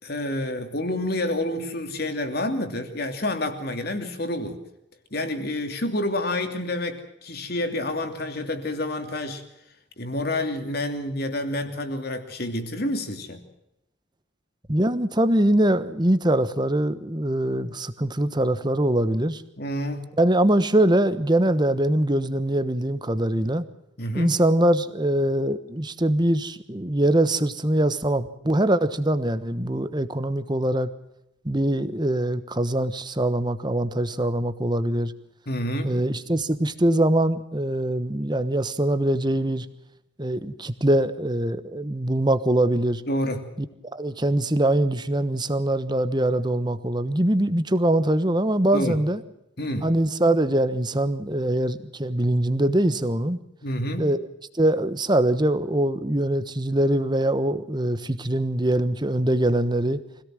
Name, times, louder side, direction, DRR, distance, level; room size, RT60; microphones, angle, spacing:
voice 1, 0.0-4.6 5.1-9.4 10.0-13.4 19.6-20.0 24.0-24.4 35.5-36.0 43.1-43.5 48.7-49.0 49.6-49.9 53.6-54.1, left 1 dB, 50° left, 6 dB, 2.8 m, -28 dB
voice 2, 14.7-19.4 20.2-23.7 24.1-30.9 31.4-35.1 35.8-39.7 40.2-43.0 43.6-43.7 43.9-49.2 49.8-53.4 54.0-54.2 54.5-60.0, right 1 dB, 20° right, 12 dB, 1.1 m, -23 dB
25.0 x 17.5 x 7.7 m, 0.83 s
head